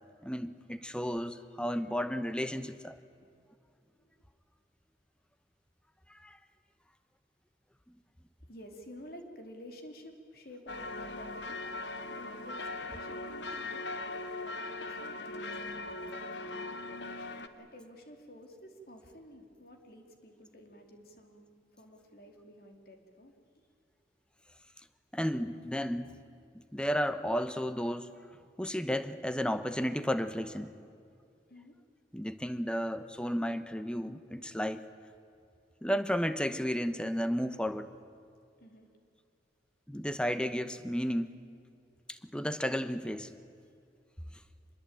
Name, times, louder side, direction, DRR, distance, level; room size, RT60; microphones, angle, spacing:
voice 1, 0.2-3.0 6.2-6.4 25.1-26.2 26.7-28.2 28.6-30.7 32.1-34.9 35.8-37.9 39.9-41.3 42.1-43.3, equal, 5° left, 11 dB, 0.9 m, -33 dB
voice 2, 8.4-11.7 12.1-23.3 31.5-31.7 38.6-38.9, equal, 55° left, 4 dB, 3.1 m, -52 dB
sound 1, 10.7-17.5, left 2 dB, 90° left, 1.3 m, -40 dB
25.5 x 21.0 x 8.9 m, 2.4 s
head